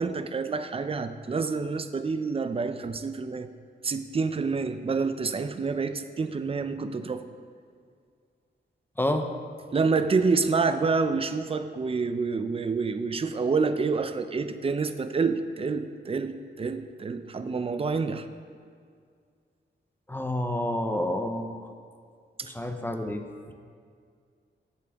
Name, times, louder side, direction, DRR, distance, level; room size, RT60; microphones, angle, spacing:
voice 1, 0.0-3.5 3.8-7.2 9.7-18.3 22.4-22.5, right 4 dB, 30° right, 10 dB, 0.5 m, -28 dB
voice 2, 9.0-9.3 20.1-21.7 22.4-23.5, left 1 dB, 10° left, 5 dB, 0.6 m, -29 dB
14.0 x 8.5 x 3.5 m, 2.1 s
wide cardioid pair, 165°, 19 cm